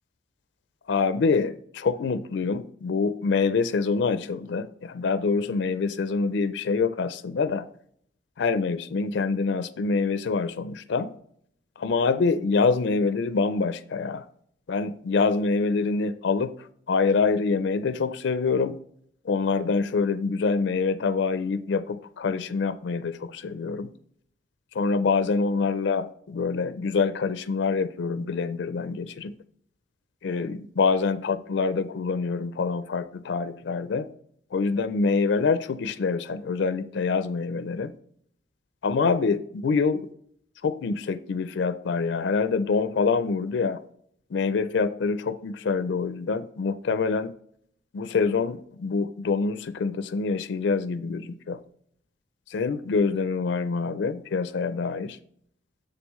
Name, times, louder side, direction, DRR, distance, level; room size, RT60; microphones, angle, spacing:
voice 1, 0.9-7.6 8.4-11.1 11.8-14.3 14.7-18.8 19.2-23.9 24.7-29.3 30.2-34.1 34.5-37.9 38.8-40.1 40.6-43.8 44.3-47.3 47.9-51.6 52.5-55.2, left 4 dB, 65° left, 12 dB, 0.4 m, -25 dB
7.0 x 6.7 x 3.1 m, 0.65 s
head